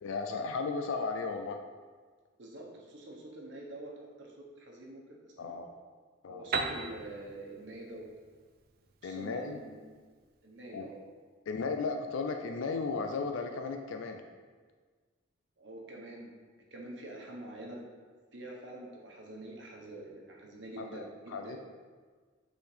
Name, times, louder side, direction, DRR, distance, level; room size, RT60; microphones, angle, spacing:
voice 1, 0.0-1.6 5.4-5.7 6.2-6.4 9.0-9.6 10.7-10.9 11.5-14.2 20.8-21.6, left 4 dB, 75° left, 5 dB, 0.4 m, -35 dB
voice 2, 2.4-5.6 6.3-8.1 9.0-10.0 10.4-11.0 15.6-16.3 16.7-17.8 18.3-21.6, right 1 dB, 65° right, -2 dB, 1.1 m, -46 dB
Piano, 6.5-10.2, right 4 dB, 50° right, 0.4 m, -38 dB
8.3 x 4.1 x 3.4 m, 1.5 s
head